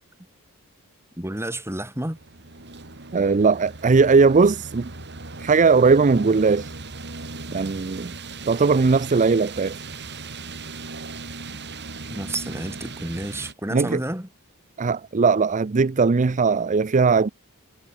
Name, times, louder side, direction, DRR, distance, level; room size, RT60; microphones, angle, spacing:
voice 1, 1.2-2.2 12.1-14.3, right 1 dB, 10° right, 2.8 m, -30 dB
sound 1, 2.1-13.5, right 3 dB, 50° right, 3.7 m, -38 dB
voice 2, 3.1-4.9 5.4-6.7 7.5-8.1 8.5-9.8 13.7-14.0 14.8-17.3, right 4 dB, 35° right, 0.5 m, -19 dB
head